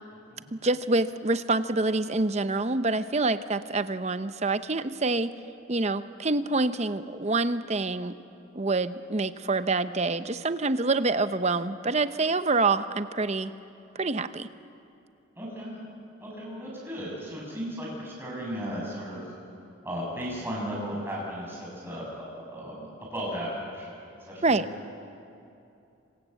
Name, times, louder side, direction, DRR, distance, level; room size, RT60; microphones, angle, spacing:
voice 1, 0.5-5.3 5.7-8.1 8.5-13.5 13.9-14.5 24.4-24.7, right 3 dB, 30° right, 12 dB, 0.7 m, -26 dB
voice 2, 15.4-15.7 16.2-19.2 19.8-23.9 24.2-24.7, equal, 10° right, -4 dB, 7.9 m, -35 dB
27.5 x 25.5 x 8.3 m, 2.7 s
head